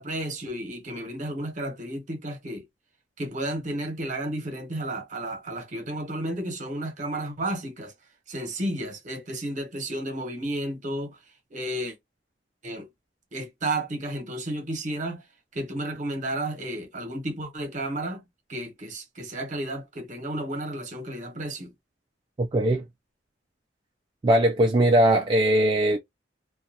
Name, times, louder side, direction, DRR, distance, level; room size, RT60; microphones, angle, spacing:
voice 1, 0.0-2.6 3.2-7.9 8.3-11.2 11.5-12.0 12.6-12.9 13.3-15.2 15.5-18.2 18.5-21.7, right 1 dB, 45° right, 0.9 m, -32 dB
voice 2, 22.4-22.8 24.2-26.0, right 1 dB, 25° right, 0.3 m, -20 dB
2.3 x 2.3 x 2.7 m
head